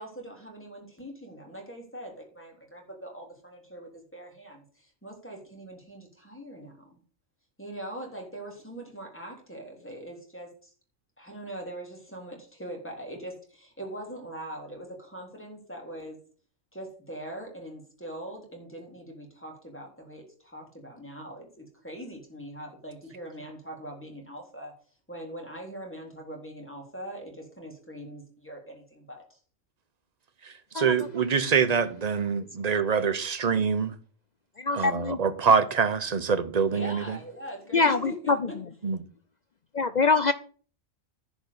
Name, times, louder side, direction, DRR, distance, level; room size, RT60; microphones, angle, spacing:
voice 1, 0.0-7.0 7.6-10.7 11.2-16.2 16.7-24.7 25.1-29.4 36.7-38.6, right 1 dB, 10° left, 3.7 m, -42 dB
voice 2, 30.4-33.9 34.7-37.2 38.8-39.0, right 6 dB, 35° right, 1.0 m, -25 dB
voice 3, 34.6-35.2 37.7-38.4 39.7-40.3, left 4 dB, 55° left, 0.4 m, -24 dB
10.5 x 5.2 x 8.2 m
omnidirectional pair, 1.3 m